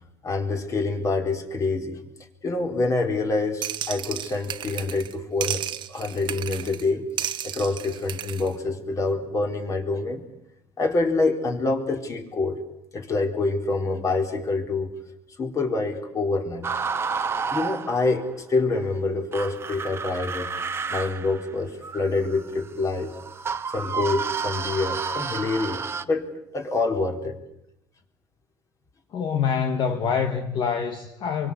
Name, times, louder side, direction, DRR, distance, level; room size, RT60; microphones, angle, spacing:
voice 1, 0.2-2.0 2.4-5.6 5.9-10.2 10.8-12.6 12.9-14.9 15.4-16.7 17.5-20.5 20.9-23.1 23.7-26.3 26.5-27.4, left 3 dB, 30° left, 4.2 m, -26 dB
sound 1, 3.6-5.1 5.4-6.8 7.2-8.5, right 11 dB, 50° right, 1.3 m, -33 dB
sound 2, 16.6-18.3 19.3-26.0, right 5 dB, 25° right, 1.2 m, -30 dB
voice 2, 29.1-31.5, left 6 dB, 50° left, 2.0 m, -25 dB
26.5 x 24.0 x 8.5 m
cardioid pair, 130°, 10 cm